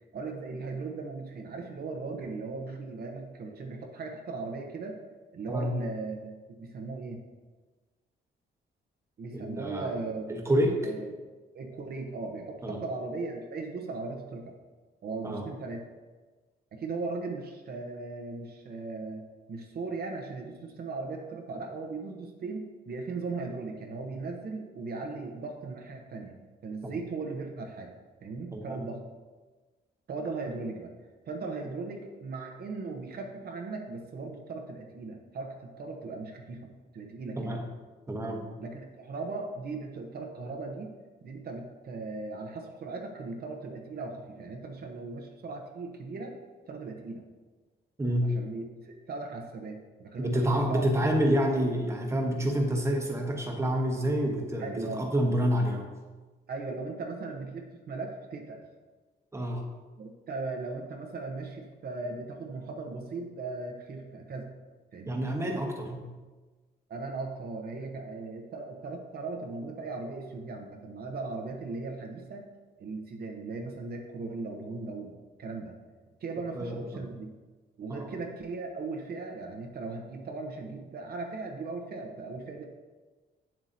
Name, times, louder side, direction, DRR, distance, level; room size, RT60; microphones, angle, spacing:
voice 1, 0.1-5.0 5.3-6.3 6.6-7.2 9.2-10.4 10.8-11.1 11.5-14.6 15.0-15.8 16.7-26.4 26.6-27.9 28.2-29.0 30.1-30.9 31.3-36.7 36.9-37.6 38.6-40.9 41.2-46.4 46.7-47.2 48.2-50.9 54.6-55.1 56.5-58.6 60.0-64.5 64.9-65.2 66.9-72.5 72.8-75.8 76.2-77.3 77.8-82.6, right 3 dB, 55° right, 2 dB, 0.9 m, -38 dB
voice 2, 9.3-9.9 10.3-10.9 12.6-12.8 15.2-15.4 26.8-26.9 28.5-28.8 37.4-37.6 38.1-38.5 48.0-48.3 50.2-55.9 59.3-59.6 65.1-66.1 76.5-77.1 77.9-78.1, equal, 15° right, 1 dB, 1.1 m, -28 dB
8.9 x 7.5 x 2.7 m, 1.3 s
cardioid pair, 140°, 19 cm